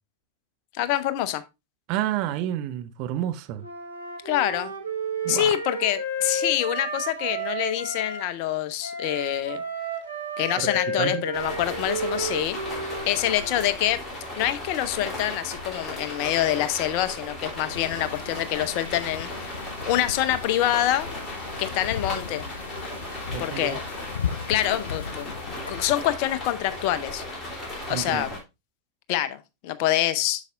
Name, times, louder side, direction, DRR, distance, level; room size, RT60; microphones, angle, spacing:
voice 1, 0.8-1.4 4.2-4.7 5.3-9.6 10.4-14.0 14.4-19.6 19.9-21.1 21.6-22.4 23.4-23.8 24.5-27.2 27.9-28.3 29.1-30.4, left 12 dB, 45° left, 0.7 m, -26 dB
voice 2, 1.9-3.7 5.2-5.6 10.6-10.7 11.0-11.3 23.3-23.8 27.9-28.4, right 12 dB, 45° right, 0.7 m, -30 dB
Wind instrument woodwind instrument, 3.6-8.2 8.8-13.7, right 2 dB, 80° right, 1.4 m, -32 dB
sound 1, 11.3-28.4, left 1 dB, 15° left, 3.2 m, -36 dB
sound 2, 17.7-25.9, left 7 dB, 70° left, 0.4 m, -37 dB
8.2 x 6.7 x 2.5 m
figure-of-eight pair, 90°, 0 cm